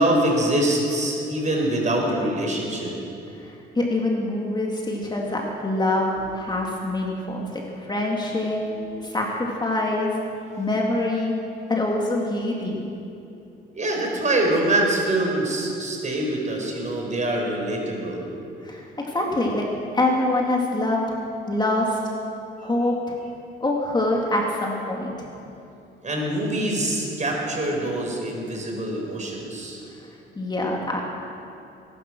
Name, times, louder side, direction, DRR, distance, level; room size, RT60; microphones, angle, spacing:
voice 1, 0.0-2.9 6.1-6.2 8.7-9.2 13.7-18.2 26.0-29.8, right 1 dB, 35° right, 0 dB, 4.7 m, -24 dB
voice 2, 3.4-8.6 9.0-10.2 10.6-11.3 11.7-12.9 18.6-19.7 19.9-21.0 21.5-22.0 22.6-23.2 23.6-25.3 30.4-31.0, left 2 dB, 20° left, -1 dB, 2.4 m, -25 dB
20.0 x 11.5 x 6.2 m, 2.8 s
cardioid pair, 90°, 20 cm